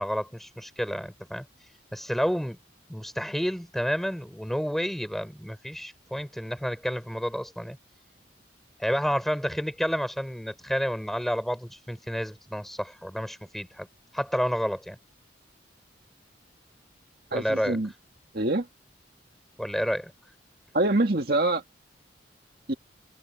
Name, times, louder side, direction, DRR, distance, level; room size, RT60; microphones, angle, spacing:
voice 1, 0.0-1.5 1.9-2.6 2.9-7.8 8.8-13.9 14.1-15.0 17.3-17.8 19.6-20.1, equal, ahead, 5.5 m, -30 dB
voice 2, 17.3-17.9 18.3-18.7 20.7-21.6 22.7-22.8, right 2 dB, 50° right, 2.1 m, -25 dB
head